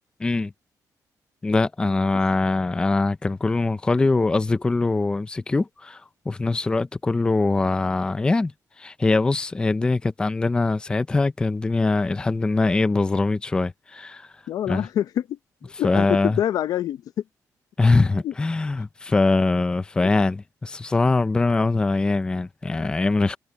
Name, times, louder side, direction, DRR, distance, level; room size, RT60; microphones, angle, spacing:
voice 1, 0.2-0.5 1.4-8.5 8.8-14.3 14.7-14.9 15.8-16.4 17.8-23.4, left 3 dB, 15° left, 0.5 m, -22 dB
voice 2, 14.5-17.0 18.2-18.3, left 11 dB, 70° left, 0.7 m, -26 dB
wide cardioid pair, 180°, 6 cm